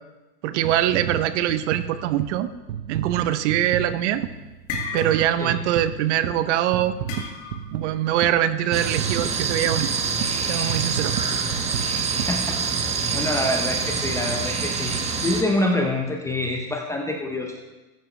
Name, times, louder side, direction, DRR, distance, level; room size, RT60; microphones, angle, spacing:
voice 1, 0.4-2.5 2.9-4.2 4.9-6.9 7.7-9.9 10.4-11.1, right 12 dB, 50° right, 13 dB, 0.7 m, -23 dB
sound 1, 0.6-13.0 13.6-13.7, right 9 dB, 70° right, 0.9 m, -33 dB
sound 2, 3.8-4.1 4.4-5.5 5.8-6.1 7.1-7.8, left 6 dB, 55° left, 1.9 m, -33 dB
sound 3, 8.7-15.4, right 5 dB, 15° right, 0.8 m, -26 dB
voice 2, 12.3-12.6 13.1-17.5, left 1 dB, 5° left, 2 dB, 0.4 m, -26 dB
13.5 x 9.4 x 3.1 m, 1.1 s
hypercardioid pair, 110°, 47 cm